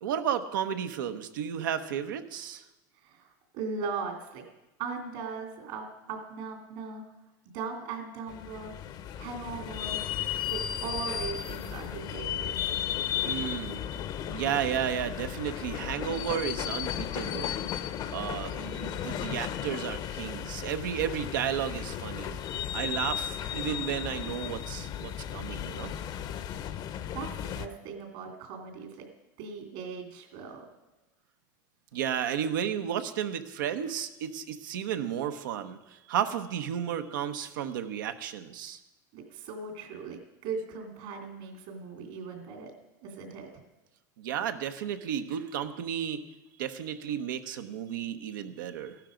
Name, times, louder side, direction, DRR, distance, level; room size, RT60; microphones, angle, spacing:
voice 1, 0.0-2.6 13.2-13.8 14.3-17.5 18.1-22.4 22.7-25.9 31.9-38.8 44.2-46.2 46.6-49.0, right 9 dB, 90° right, 8 dB, 1.1 m, -33 dB
voice 2, 3.0-4.4 4.8-7.0 7.5-8.7 9.2-10.0 10.5-12.6 27.1-29.1 29.4-30.7 39.1-42.7 43.0-43.5, right 5 dB, 70° right, 3 dB, 2.9 m, -38 dB
sound 1, 8.3-27.7, left 10 dB, 40° left, 0.8 m, -35 dB
15.0 x 12.0 x 5.2 m, 1.0 s
supercardioid pair, 125°, 10 cm